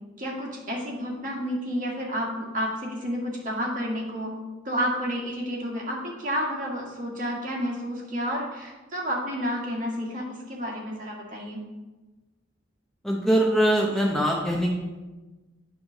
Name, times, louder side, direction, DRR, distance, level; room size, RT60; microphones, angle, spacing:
voice 1, 0.2-4.3 4.6-11.6, equal, 45° right, -2 dB, 1.6 m, -30 dB
voice 2, 13.0-14.7, right 1 dB, ahead, -1 dB, 0.6 m, -22 dB
8.5 x 3.1 x 6.2 m, 1.2 s
head